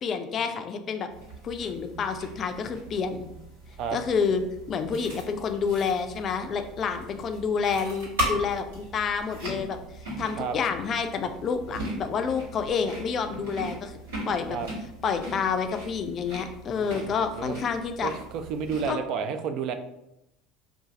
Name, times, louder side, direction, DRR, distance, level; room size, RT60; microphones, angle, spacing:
voice 1, 0.0-1.1 1.4-3.2 3.9-4.4 4.7-9.8 10.2-14.0 14.3-14.6 15.0-18.1 18.9-19.0, left 6 dB, 45° left, 7 dB, 0.4 m, -28 dB
sound 1, 1.1-18.9, right 1 dB, 80° right, 1.2 m, -38 dB
voice 2, 16.8-17.6 18.0-19.7, right 6 dB, 55° right, 8 dB, 0.3 m, -31 dB
2.5 x 2.3 x 3.9 m, 0.85 s
hypercardioid pair, 70°, 0 cm